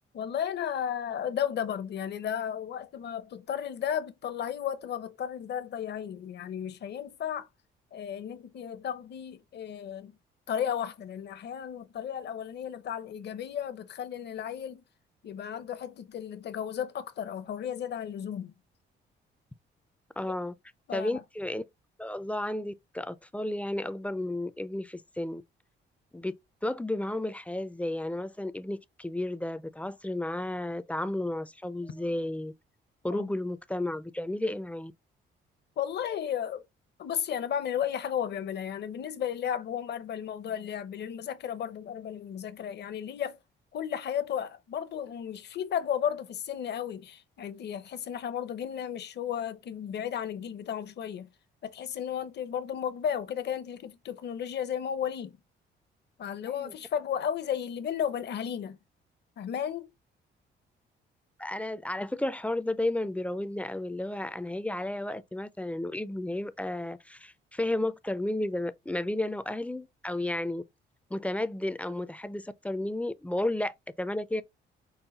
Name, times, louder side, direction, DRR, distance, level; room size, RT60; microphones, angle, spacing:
voice 1, 0.1-7.5 7.9-10.1 10.5-14.8 15.2-18.5 20.9-21.2 33.1-33.3 35.8-36.6 37.0-43.4 43.7-51.3 51.6-55.4 56.2-58.8 59.4-59.9, left 9 dB, 60° left, 0.7 m, -34 dB
voice 2, 20.2-20.5 20.9-21.6 22.0-25.4 26.1-26.3 26.6-32.5 33.0-34.9 56.6-56.7 61.4-70.6 71.1-74.4, left 1 dB, 5° left, 0.4 m, -32 dB
5.5 x 2.2 x 3.8 m
cardioid pair, 90°, 20 cm